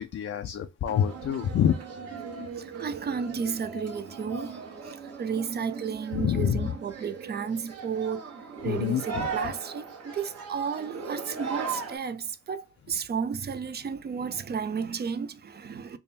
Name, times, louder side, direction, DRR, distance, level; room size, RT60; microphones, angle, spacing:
voice 1, 0.0-1.7 6.1-6.6 8.7-9.3, left 9 dB, 55° left, 0.4 m, -26 dB
sound 1, 0.8-12.0, right 5 dB, 60° right, 1.3 m, -38 dB
voice 2, 2.5-8.3 8.6-16.0, right 6 dB, 35° right, 0.4 m, -33 dB
3.5 x 2.2 x 4.1 m
cardioid pair, 90°, 29 cm